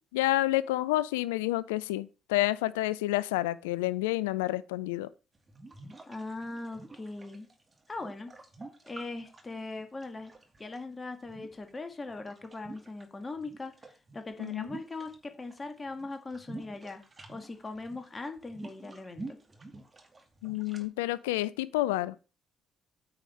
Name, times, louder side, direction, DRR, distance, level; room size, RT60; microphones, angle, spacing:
voice 1, 0.1-5.1 14.4-14.7 20.4-22.1, left 16 dB, 75° left, 0.4 m, -29 dB
sound 1, 5.4-10.8 11.2-13.1 13.3-15.6 15.9-20.9, right 2 dB, 25° right, 2.1 m, -48 dB
voice 2, 6.1-7.5 7.9-8.3 8.8-10.3 10.6-17.0 17.3-19.4, left 3 dB, 25° left, 1.8 m, -40 dB
8.9 x 4.9 x 5.5 m
figure-of-eight pair, 45°, 0 cm